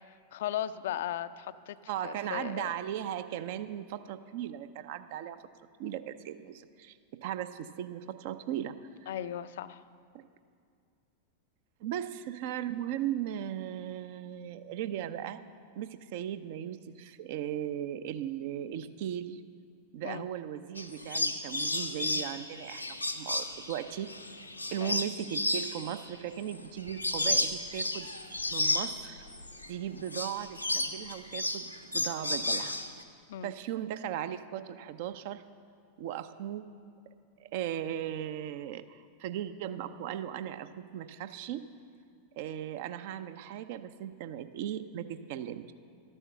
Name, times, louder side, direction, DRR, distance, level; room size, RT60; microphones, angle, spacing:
voice 1, 0.1-1.8 2.0-2.7 9.1-9.8 20.0-20.2 24.8-25.0 33.3-33.5, left 11 dB, 55° left, 14 dB, 0.4 m, -37 dB
voice 2, 1.9-5.4 5.8-9.1 10.1-10.2 11.8-15.4 15.8-19.4 19.9-24.1 24.7-28.1 28.5-29.2 29.7-32.8 33.4-35.4 36.0-36.7 37.4-41.7 42.4-45.7, right 10 dB, 50° right, 12 dB, 0.5 m, -37 dB
sound 1, 20.8-29.7 30.0-33.0, left 2 dB, 90° left, 0.8 m, -33 dB
12.5 x 9.9 x 6.7 m, 2.3 s
figure-of-eight pair, 90°, 0 cm